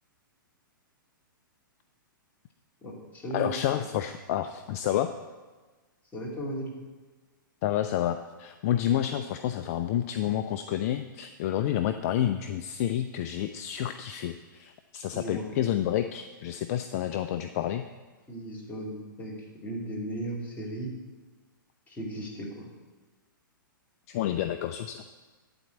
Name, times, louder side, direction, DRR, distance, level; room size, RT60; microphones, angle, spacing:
voice 1, 2.8-3.5 6.1-6.7 15.1-15.5 18.3-19.3 19.6-20.9 21.9-22.7, right 1 dB, 15° left, -4 dB, 2.8 m, -36 dB
voice 2, 3.3-5.1 7.6-17.8 24.1-25.0, left 11 dB, 45° left, 9 dB, 0.5 m, -29 dB
11.5 x 4.5 x 8.0 m, 1.3 s
hypercardioid pair, 120°, 11 cm